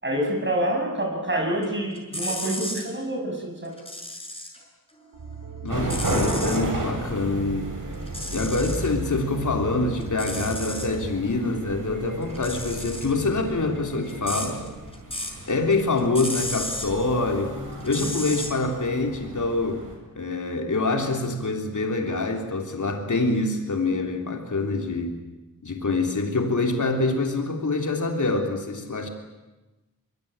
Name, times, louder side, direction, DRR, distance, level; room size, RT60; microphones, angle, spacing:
voice 1, 0.0-3.8 18.0-18.1, right 1 dB, 35° right, 1 dB, 7.3 m, -27 dB
sound 1, 1.6-2.9 3.6-4.6 5.0-6.7 7.9-8.9 9.3-10.9 12.2-15.4 15.7-16.9 17.8-18.5, left 1 dB, 15° left, 6.9 m, -34 dB
sound 2, 5.1-14.7, right 5 dB, 85° right, 4.0 m, -40 dB
voice 2, 5.6-7.7 8.3-14.6 15.5-17.6 17.8-19.8 20.2-25.2 25.6-29.1, left 3 dB, 55° left, 3 dB, 3.6 m, -25 dB
sound 3, 5.7-19.9, right 1 dB, 65° right, 7.9 m, -33 dB
24.5 x 24.0 x 9.0 m, 1.1 s
wide cardioid pair, 80°, 35 cm